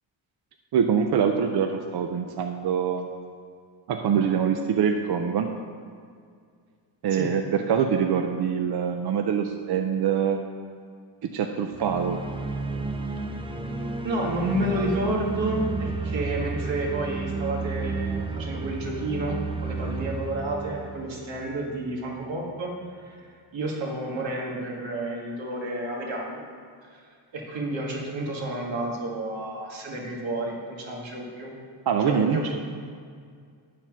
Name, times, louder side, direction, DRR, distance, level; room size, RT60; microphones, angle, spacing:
voice 1, 0.7-3.1 3.9-5.5 7.0-10.4 11.2-12.2 31.9-32.5, right 7 dB, 60° right, 5 dB, 0.6 m, -24 dB
sound 1, 11.7-21.8, right 3 dB, 10° right, 0.5 m, -32 dB
voice 2, 14.0-22.7 23.0-26.4 26.9-27.0 27.3-31.5 32.0-32.5, right 1 dB, 85° right, -2 dB, 1.8 m, -30 dB
11.0 x 4.3 x 6.0 m, 2.1 s
cardioid pair, 110°, 44 cm